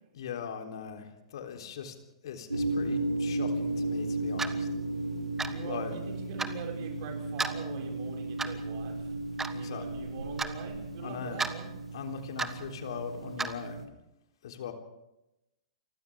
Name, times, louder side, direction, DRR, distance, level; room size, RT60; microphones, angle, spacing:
voice 1, 0.1-2.0 2.2-4.7 5.6-5.9 9.5-9.9 11.0-11.4 11.9-13.9 14.4-14.7, left 7 dB, 60° left, 4 dB, 3.7 m, -40 dB
sound 1, 2.5-13.9, right 2 dB, 90° right, 2.5 m, -35 dB
Clock, 4.4-4.6 5.4-5.6 6.4-6.5 7.4-7.6 8.4-8.6 9.4-9.5 10.4-10.5 11.4-11.5 12.4-12.6 13.4-13.5, right 4 dB, 10° right, 1.4 m, -32 dB
voice 2, 5.4-9.1 9.5-11.7, right 6 dB, 50° right, 2 dB, 5.8 m, -43 dB
29.5 x 24.5 x 3.7 m, 0.90 s
figure-of-eight pair, 105°, 3 cm